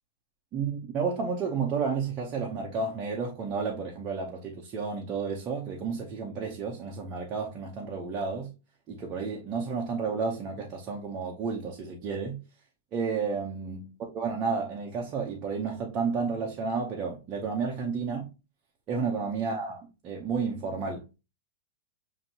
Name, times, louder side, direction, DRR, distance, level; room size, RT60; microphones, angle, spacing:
voice 1, 0.5-8.5 8.9-12.4 12.9-13.9 14.1-18.3 18.9-21.1, right 5 dB, 20° right, 0.6 m, -31 dB
7.4 x 2.6 x 2.8 m
supercardioid pair, 180°, 0 cm